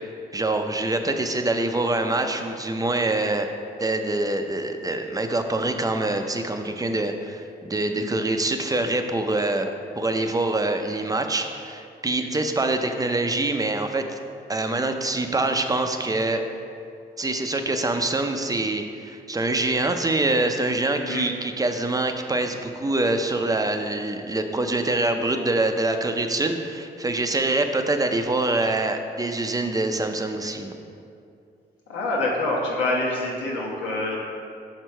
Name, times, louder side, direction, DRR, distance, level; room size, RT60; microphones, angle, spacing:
voice 1, 0.3-3.5 3.8-14.2 14.5-16.4 17.2-30.7, right 2 dB, 20° right, 6 dB, 0.5 m, -25 dB
voice 2, 20.9-21.3 31.9-34.2, left 2 dB, 90° left, -4 dB, 1.2 m, -26 dB
5.9 x 4.6 x 4.5 m, 2.5 s
supercardioid pair, 60°, 18 cm